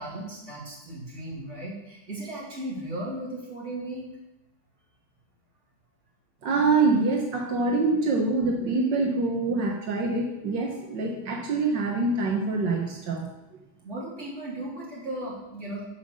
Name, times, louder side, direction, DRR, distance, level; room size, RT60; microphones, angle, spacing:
voice 1, 0.0-4.1 13.8-15.8, right 1 dB, 40° right, -6 dB, 3.9 m, -36 dB
voice 2, 6.4-13.3, right 3 dB, 85° right, 0 dB, 1.9 m, -25 dB
14.5 x 5.6 x 6.4 m, 0.97 s
omnidirectional pair, 1.9 m